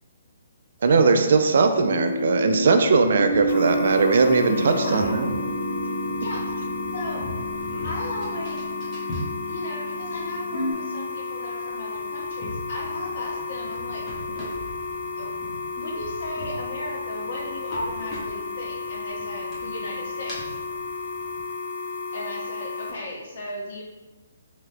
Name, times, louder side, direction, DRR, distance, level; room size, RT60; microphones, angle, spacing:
voice 1, 0.8-5.4, right 4 dB, 60° right, 6 dB, 0.3 m, -19 dB
sound 1, 1.0-10.7, right 1 dB, 25° right, 0.9 m, -30 dB
sound 2, 3.0-21.4, left 1 dB, 15° left, 0.7 m, -41 dB
sound 3, 3.5-22.9, left 4 dB, 90° left, 0.6 m, -33 dB
voice 2, 4.6-5.2 6.2-6.4 6.9-7.2 7.8-8.6 9.5-14.0 15.2-15.3 15.7-20.4 22.1-23.8, left 1 dB, 50° left, -2 dB, 0.7 m, -35 dB
2.7 x 2.2 x 3.3 m, 1.2 s
hypercardioid pair, 165°, 0 cm